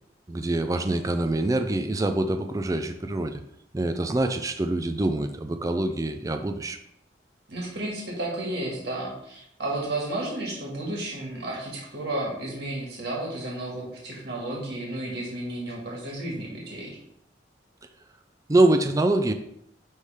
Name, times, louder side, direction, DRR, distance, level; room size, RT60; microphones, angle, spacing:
voice 1, 0.3-3.4 3.7-6.8 18.5-19.3, right 2 dB, 20° right, 6 dB, 0.4 m, -25 dB
voice 2, 7.5-17.0, right 1 dB, 65° right, -3 dB, 1.8 m, -32 dB
9.5 x 3.3 x 3.5 m, 0.76 s
head